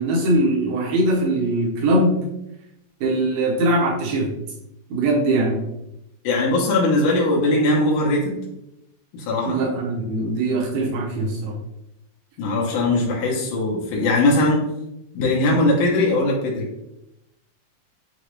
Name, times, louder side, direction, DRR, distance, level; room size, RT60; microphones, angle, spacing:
voice 1, 0.0-2.2 3.0-4.3 4.9-5.6 9.4-11.5, right 1 dB, 80° right, -4 dB, 2.7 m, -21 dB
voice 2, 6.2-8.4 9.1-9.6 12.4-14.6 15.1-16.7, left 2 dB, 70° left, -3 dB, 2.2 m, -20 dB
6.8 x 2.3 x 3.1 m, 0.86 s
omnidirectional pair, 4.1 m